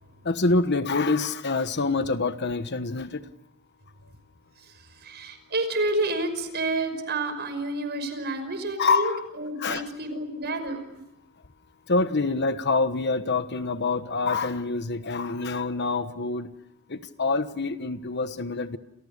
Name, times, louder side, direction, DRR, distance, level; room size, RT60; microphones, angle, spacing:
voice 1, 0.2-3.3 8.8-9.3 9.6-9.9 11.9-16.5 16.9-18.8, left 3 dB, 55° left, 1.3 m, -26 dB
voice 2, 4.6-11.0, right 2 dB, 50° right, 5.7 m, -30 dB
30.0 x 28.5 x 6.7 m
head